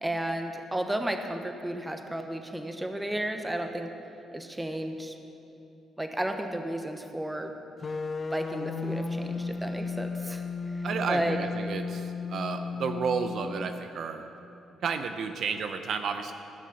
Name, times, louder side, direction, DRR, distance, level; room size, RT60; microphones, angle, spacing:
voice 1, 0.0-3.9 4.3-5.2 6.0-7.5 8.3-11.4, right 1 dB, 10° right, 6 dB, 1.0 m, -33 dB
sound 1, 7.8-13.9, left 4 dB, 35° left, 0.6 m, -34 dB
voice 2, 10.8-14.3 14.8-16.3, right 5 dB, 65° right, 7 dB, 0.6 m, -32 dB
14.5 x 6.2 x 7.0 m, 2.9 s
cardioid pair, 90°, 0 cm